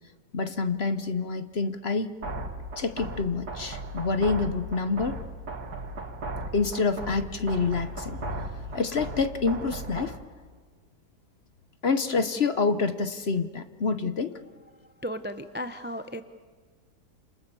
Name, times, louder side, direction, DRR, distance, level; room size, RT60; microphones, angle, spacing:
voice 1, 0.3-2.1 2.8-5.2 6.5-10.2 11.8-14.4, left 4 dB, 45° left, 10 dB, 1.0 m, -27 dB
sound 1, 2.2-10.2, right 2 dB, 70° right, 2.5 m, -37 dB
voice 2, 14.8-16.2, equal, 10° right, 10 dB, 0.5 m, -35 dB
29.5 x 27.0 x 7.0 m, 1.5 s
omnidirectional pair, 1.7 m